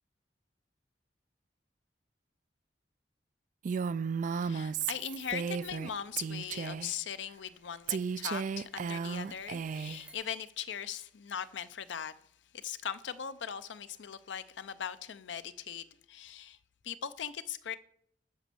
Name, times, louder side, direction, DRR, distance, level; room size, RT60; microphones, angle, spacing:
Female speech woman speaking, 3.6-5.9 6.2-6.9 7.9-10.0, right 6 dB, 45° right, 0.3 m, -34 dB
voice 1, 4.3-12.1 12.5-16.6 16.8-17.8, left 8 dB, 85° left, 0.5 m, -40 dB
sound 1, 6.9-10.1, right 1 dB, 5° right, 1.3 m, -63 dB
9.5 x 5.1 x 6.8 m
head